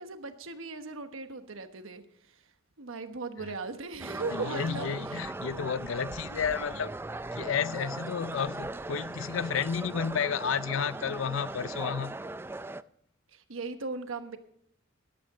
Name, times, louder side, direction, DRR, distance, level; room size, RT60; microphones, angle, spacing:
voice 1, 0.0-2.0 2.8-5.3 13.3-14.4, right 3 dB, 75° right, 1.2 m, -38 dB
sound 1, 4.0-12.8, right 2 dB, 10° right, 0.4 m, -39 dB
voice 2, 4.3-6.9 7.3-12.1, left 7 dB, 70° left, 0.5 m, -31 dB
13.5 x 12.0 x 3.7 m
head